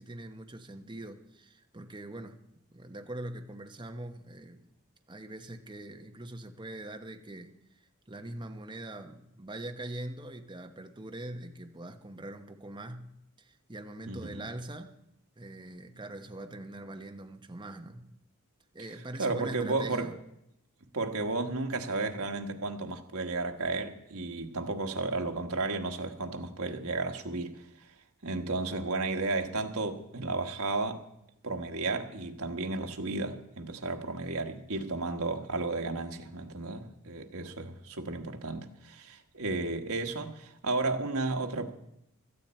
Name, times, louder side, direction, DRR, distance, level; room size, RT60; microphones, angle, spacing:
voice 1, 0.0-2.4 2.7-4.7 5.1-7.5 8.1-15.0 15.4-18.1 18.7-20.1, right 1 dB, 20° right, 1.0 m, -42 dB
voice 2, 14.1-14.5 19.2-20.1 20.9-27.6 28.2-31.0 31.4-41.7, right 3 dB, 80° right, 1.4 m, -33 dB
16.5 x 13.5 x 4.4 m
head